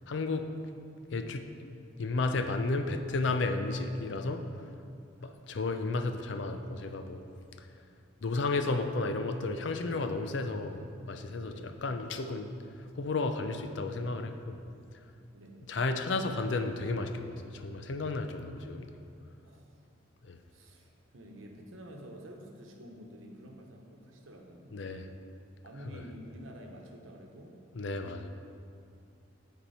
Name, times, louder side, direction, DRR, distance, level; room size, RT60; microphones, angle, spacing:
voice 1, 0.1-0.5 1.1-1.7 2.0-4.4 5.2-7.2 7.6-7.7 8.2-12.5 13.0-14.6 15.7-18.9 20.3-20.4 24.7-25.1 25.9-26.0 27.7-28.3, left 3 dB, 65° left, 7 dB, 0.5 m, -33 dB
voice 2, 5.2-5.6 8.2-8.4 11.4-11.8 15.3-15.6 19.4-19.8 20.5-25.0 25.6-27.6, equal, 85° right, 1 dB, 1.0 m, -50 dB
10.0 x 4.4 x 4.2 m, 2.5 s
head